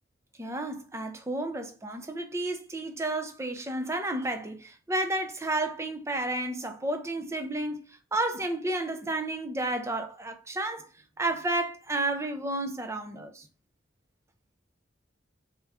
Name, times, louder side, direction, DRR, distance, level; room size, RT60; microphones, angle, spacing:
voice 1, 0.4-7.8 8.1-10.9 11.2-13.5, right 2 dB, 15° right, 0.5 m, -31 dB
3.5 x 2.9 x 4.7 m
head